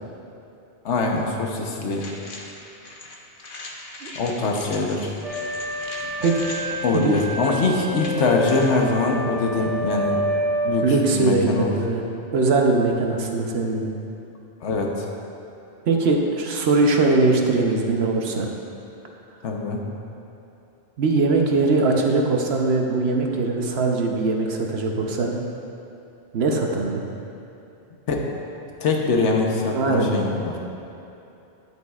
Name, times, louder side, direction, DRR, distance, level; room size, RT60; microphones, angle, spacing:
voice 1, 0.8-2.0 4.1-5.1 6.8-10.2 10.6-10.8 11.1-11.7 14.6-14.9 19.4-19.9 28.1-28.2 28.8-30.5, left 3 dB, 85° left, 0 dB, 1.2 m, -23 dB
sound 1, 1.9-8.8, left 2 dB, 50° left, 1.0 m, -40 dB
sound 2, 5.2-10.7, equal, 85° right, 1.2 m, -28 dB
voice 2, 10.8-12.0 12.3-13.9 15.9-18.5 21.0-25.4 26.3-27.0 29.7-30.1, right 3 dB, 65° right, 1 dB, 1.0 m, -21 dB
11.0 x 8.1 x 2.4 m, 2.9 s
omnidirectional pair, 1.2 m